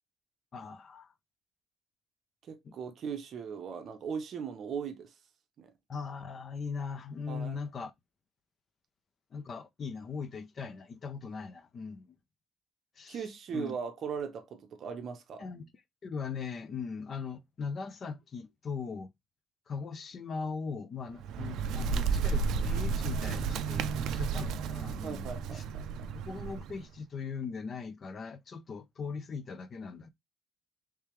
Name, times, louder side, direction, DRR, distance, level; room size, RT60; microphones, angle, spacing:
voice 1, 0.5-1.1 2.6-2.7 5.9-7.9 9.3-12.1 13.0-13.3 13.5-13.8 15.4-15.7 16.0-19.1 19.7-25.6 26.1-30.1, left 5 dB, 30° left, 0.3 m, -40 dB
voice 2, 2.5-5.1 5.6-5.7 7.3-7.6 13.1-15.5 25.0-26.1, right 6 dB, 45° right, 0.7 m, -39 dB
Bird, 21.1-26.8, right 5 dB, 70° right, 0.3 m, -32 dB
3.3 x 3.2 x 3.0 m
cardioid pair, 180°, 0 cm